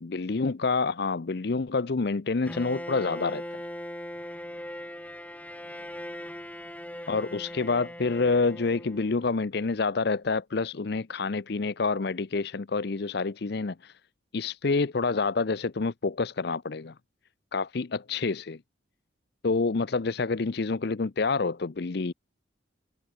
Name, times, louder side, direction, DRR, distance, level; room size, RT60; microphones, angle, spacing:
voice 1, 0.0-3.4 7.1-13.9 14.3-16.9 17.5-18.6 19.4-22.1, left 4 dB, 55° left, 0.6 m, -28 dB
Bowed string instrument, 2.5-9.4, equal, 10° left, 2.5 m, -40 dB
head